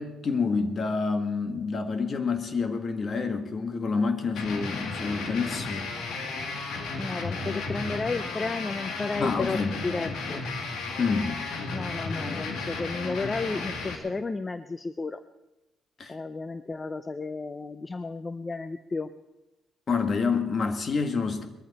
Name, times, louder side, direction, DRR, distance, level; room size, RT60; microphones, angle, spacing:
voice 1, 0.0-5.9 9.2-9.8 11.0-11.5 16.0-16.2 19.9-21.5, left 4 dB, 45° left, 8 dB, 1.7 m, -28 dB
sound 1, 4.4-14.0, left 3 dB, 80° left, 2.6 m, -34 dB
voice 2, 7.0-10.4 11.7-15.2 16.1-19.1, left 3 dB, 25° left, 12 dB, 0.6 m, -33 dB
21.0 x 14.5 x 4.2 m, 0.97 s
cardioid pair, 90°, 0 cm